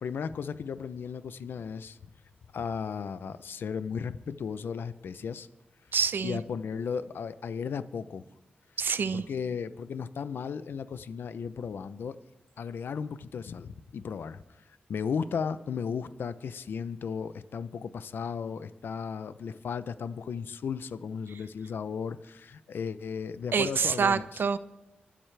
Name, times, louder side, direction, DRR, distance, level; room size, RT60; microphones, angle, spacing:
voice 1, 0.0-2.0 2.5-5.5 6.2-8.2 9.1-12.2 12.6-14.4 14.9-24.4, left 6 dB, 85° left, 14 dB, 0.6 m, -35 dB
voice 2, 5.9-6.4 8.8-9.3 23.5-24.6, right 6 dB, 75° right, 14 dB, 0.7 m, -26 dB
24.5 x 12.5 x 3.4 m, 1.0 s
cardioid pair, 55°, 4 cm